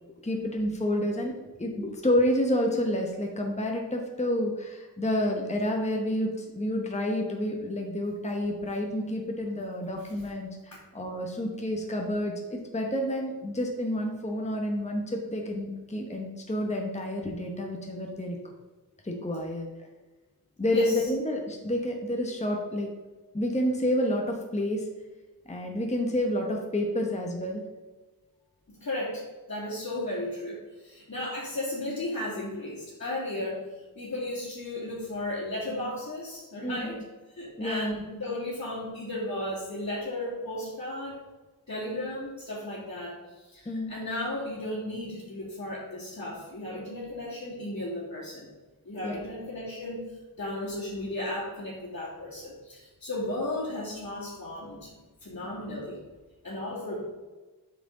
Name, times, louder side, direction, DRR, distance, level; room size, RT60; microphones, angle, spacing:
voice 1, 0.2-1.3 1.6-18.4 19.0-19.7 20.6-22.9 23.3-24.9 25.5-27.6 36.6-37.0 37.6-38.0 43.7-43.9 49.0-49.3, left 1 dB, 20° left, 1 dB, 1.0 m, -29 dB
voice 2, 20.7-21.1 28.7-29.2 29.5-33.6 34.0-37.0 37.3-41.2 41.7-48.5 48.9-50.0 50.4-54.9 55.2-56.0 56.4-57.0, left 1 dB, 45° left, -10 dB, 2.4 m, -35 dB
7.8 x 6.1 x 3.8 m, 1.2 s
wide cardioid pair, 80°, 38 cm